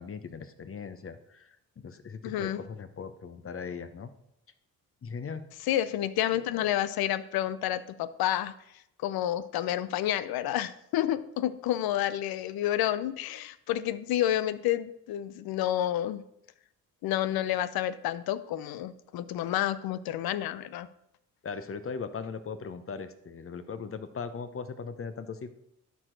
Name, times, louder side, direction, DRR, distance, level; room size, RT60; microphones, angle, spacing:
voice 1, 0.0-4.1 5.0-5.4 21.4-25.5, left 5 dB, 35° left, 11 dB, 0.8 m, -39 dB
voice 2, 2.2-2.6 5.7-8.5 9.0-16.2 17.0-20.9, left 12 dB, 70° left, 15 dB, 0.6 m, -29 dB
12.0 x 4.6 x 3.9 m, 0.79 s
supercardioid pair, 60°, 38 cm